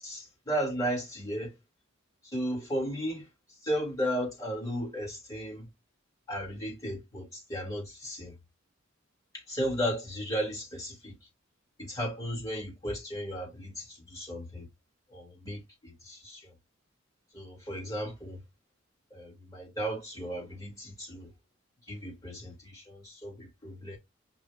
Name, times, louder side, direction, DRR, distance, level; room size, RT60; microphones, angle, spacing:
voice 1, 0.0-1.5 2.2-3.3 3.6-5.7 6.3-8.4 9.3-11.2 11.8-14.7 15.1-16.5 17.3-18.4 19.1-21.3 21.9-24.0, equal, 20° left, 2.0 m, -35 dB
5.3 x 2.3 x 3.3 m
head